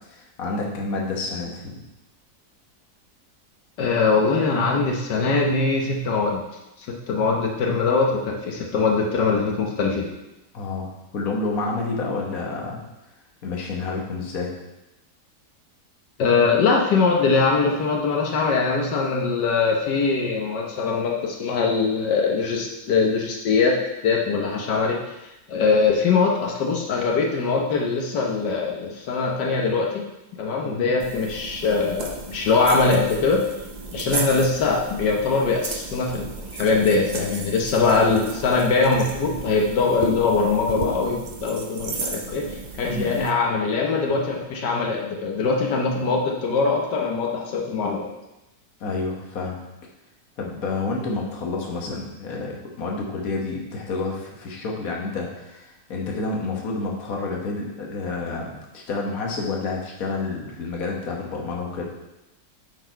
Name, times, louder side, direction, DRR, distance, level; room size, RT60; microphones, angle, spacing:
voice 1, 0.1-1.8 10.5-12.8 13.4-14.5 30.6-30.9 42.8-43.1 48.8-49.6 50.4-61.8, left 3 dB, 55° left, -1 dB, 1.7 m, -29 dB
voice 2, 3.8-6.4 6.8-10.1 16.2-25.1 25.5-30.0 30.4-33.4 33.9-48.1, left 4 dB, 85° left, 0 dB, 1.6 m, -22 dB
sound 1, 31.0-43.3, right 3 dB, 65° right, 0.4 m, -34 dB
9.8 x 4.1 x 4.5 m, 0.95 s
omnidirectional pair, 1.8 m